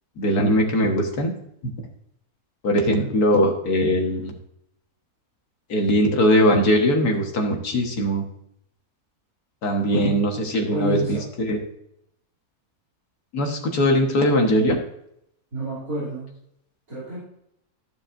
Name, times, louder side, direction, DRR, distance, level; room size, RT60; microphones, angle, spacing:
voice 1, 0.2-1.3 1.6-1.7 2.6-4.3 5.7-8.2 9.6-11.6 13.3-14.8, equal, 80° left, 2 dB, 2.0 m, -20 dB
voice 2, 9.9-10.2 10.7-11.2 15.5-16.3 16.9-17.2, right 2 dB, 65° right, -9 dB, 3.7 m, -29 dB
14.5 x 7.2 x 2.6 m, 0.75 s
omnidirectional pair, 1.6 m